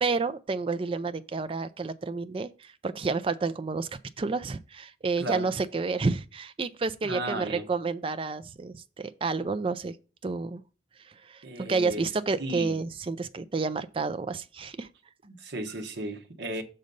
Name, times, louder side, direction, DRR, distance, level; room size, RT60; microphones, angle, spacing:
voice 1, 0.0-10.0 10.2-10.6 11.1-14.9, right 4 dB, 30° right, 0.4 m, -30 dB
voice 2, 5.2-5.5 7.0-7.7 11.4-12.1 12.4-12.8 15.2-16.6, right 1 dB, 75° right, 1.0 m, -34 dB
6.3 x 4.0 x 5.3 m
head